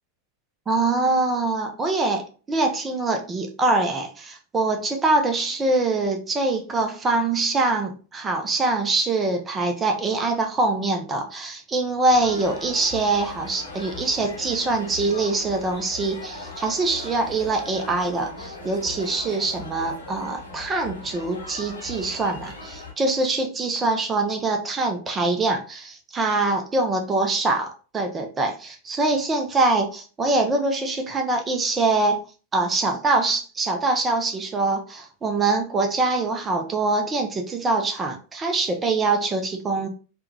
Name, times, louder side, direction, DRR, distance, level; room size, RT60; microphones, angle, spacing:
voice 1, 0.7-32.2 32.5-39.9, right 2 dB, 20° right, 3 dB, 0.6 m, -24 dB
sound 1, 12.1-22.9, left 2 dB, 75° left, 0.9 m, -39 dB
3.6 x 2.3 x 2.8 m, 0.37 s
figure-of-eight pair, 90°, 0 cm